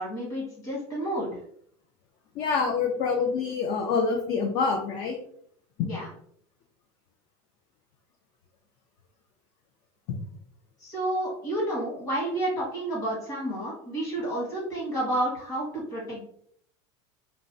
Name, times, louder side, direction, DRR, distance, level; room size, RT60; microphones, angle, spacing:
voice 1, 0.0-1.4 5.8-6.1 10.8-16.2, right 1 dB, 25° left, -6 dB, 1.5 m, -30 dB
voice 2, 2.4-5.2 5.8-5.9, left 5 dB, 45° left, 2 dB, 0.4 m, -26 dB
3.4 x 2.0 x 2.5 m, 0.65 s
cardioid pair, 170°, 14 cm